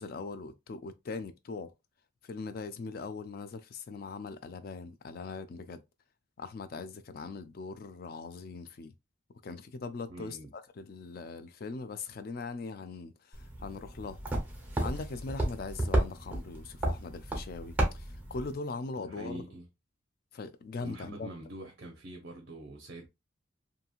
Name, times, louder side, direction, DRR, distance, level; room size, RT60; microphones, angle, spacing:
voice 1, 0.0-1.7 2.2-5.8 6.4-8.9 9.4-14.2 14.8-19.4 20.3-21.3, left 4 dB, 45° left, 0.3 m, -41 dB
voice 2, 10.1-10.5 19.0-19.7 20.8-23.1, right 1 dB, 55° right, 0.5 m, -44 dB
sound 1, 13.3-18.5, right 1 dB, 10° right, 0.8 m, -33 dB
2.9 x 2.7 x 2.3 m
head